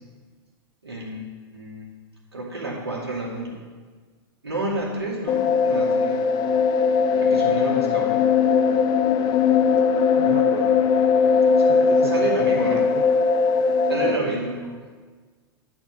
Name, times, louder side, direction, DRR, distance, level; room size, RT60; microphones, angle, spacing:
voice 1, 0.8-1.9 2.3-3.6 4.4-6.2 6.9-8.2 11.6-11.7 12.0-12.9 13.9-14.8, right 1 dB, 85° right, -4 dB, 2.6 m, -30 dB
sound 1, 5.3-14.2, left 5 dB, 35° left, 0.5 m, -19 dB
voice 2, 10.2-10.8 11.6-13.0 14.0-14.5, right 10 dB, 45° right, 5 dB, 0.6 m, -35 dB
11.0 x 4.5 x 6.7 m, 1.5 s
hypercardioid pair, 100°, 13 cm